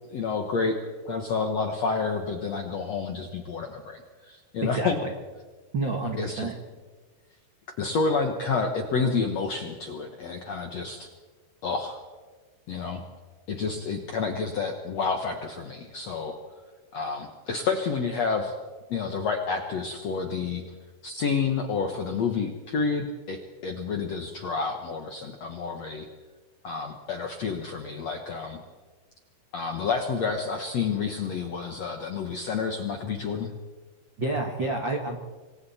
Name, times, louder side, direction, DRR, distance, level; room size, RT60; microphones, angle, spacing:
voice 1, 0.1-0.8 1.0-5.0 6.2-6.5 7.8-11.1 11.6-12.0 12.7-13.0 13.5-16.3 16.9-18.5 18.9-20.6 21.0-26.0 26.6-28.6 29.5-33.5, left 5 dB, 85° left, 4 dB, 1.4 m, -29 dB
voice 2, 4.6-5.1 5.7-6.5 34.2-35.2, right 2 dB, 75° right, 3 dB, 1.0 m, -29 dB
27.5 x 24.0 x 4.3 m, 1.3 s
omnidirectional pair, 5.2 m